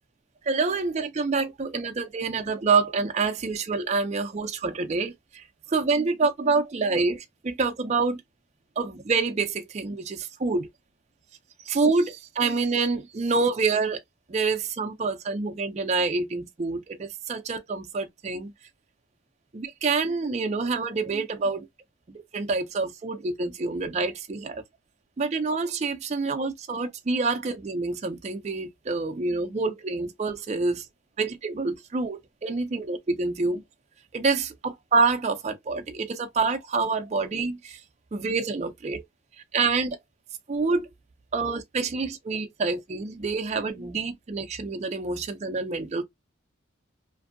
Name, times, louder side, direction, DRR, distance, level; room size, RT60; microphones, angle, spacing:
voice 1, 0.5-8.2 8.8-10.7 11.6-14.0 14.3-18.5 19.5-21.7 22.3-24.6 25.2-30.9 31.2-33.6 34.1-37.8 38.1-39.0 39.5-40.0 40.5-40.9 41.3-46.0, right 4 dB, 35° right, 0.4 m, -27 dB
2.5 x 2.5 x 2.5 m
head